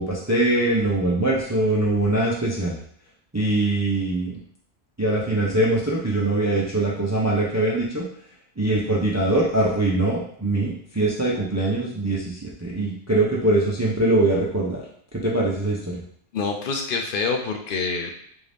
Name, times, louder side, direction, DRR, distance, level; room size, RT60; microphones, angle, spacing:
voice 1, 0.0-2.7 3.3-4.4 5.0-8.0 8.6-14.8 15.2-16.0, right 2 dB, 30° right, -3 dB, 0.3 m, -22 dB
voice 2, 16.3-18.1, left 4 dB, 60° left, 3 dB, 0.6 m, -26 dB
3.8 x 2.7 x 3.3 m, 0.62 s
omnidirectional pair, 1.2 m